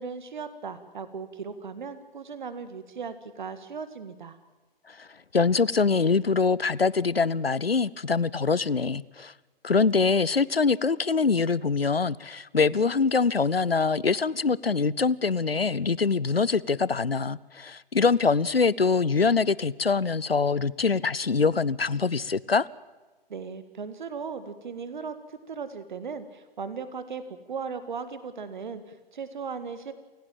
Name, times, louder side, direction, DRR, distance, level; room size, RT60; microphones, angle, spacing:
voice 1, 0.0-4.4 23.3-29.9, right 5 dB, 55° right, 1.9 m, -37 dB
voice 2, 5.3-9.3 9.6-22.7, left 4 dB, 80° left, 0.7 m, -24 dB
29.0 x 16.5 x 7.4 m
figure-of-eight pair, 125°, 29 cm